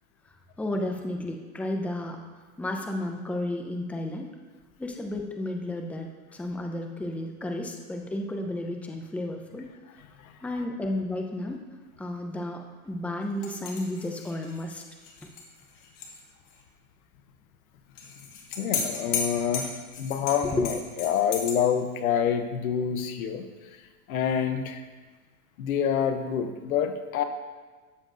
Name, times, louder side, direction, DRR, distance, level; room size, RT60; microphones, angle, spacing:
voice 1, 0.2-2.2 2.6-4.3 4.8-9.7 10.4-11.6 12.0-14.8 15.2-15.3 20.4-20.7, left 1 dB, 5° left, 3 dB, 0.7 m, -32 dB
sound 1, 13.4-16.2 16.5-16.6 17.9-21.5, left 6 dB, 55° left, 1.7 m, -35 dB
voice 2, 18.6-23.5 24.1-24.8 25.6-27.2, left 8 dB, 70° left, 8 dB, 1.0 m, -27 dB
12.5 x 7.4 x 2.6 m, 1.4 s
hypercardioid pair, 90°, 43 cm